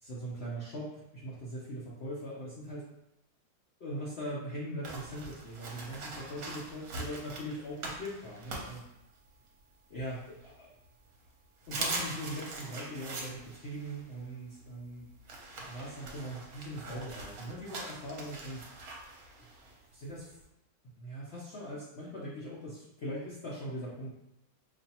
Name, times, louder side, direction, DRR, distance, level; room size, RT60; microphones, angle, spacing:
voice 1, 0.0-2.8 3.8-8.8 9.9-10.7 11.7-15.0 15.7-18.6 19.4-19.5 19.9-20.4 21.0-24.1, equal, 70° left, -7 dB, 0.6 m, -41 dB
sound 1, 4.8-9.5 9.9-10.9 11.2-11.3 11.6-20.4, right 2 dB, 60° right, 1.0 m, -42 dB
4.9 x 2.6 x 2.8 m, 0.88 s
omnidirectional pair, 2.0 m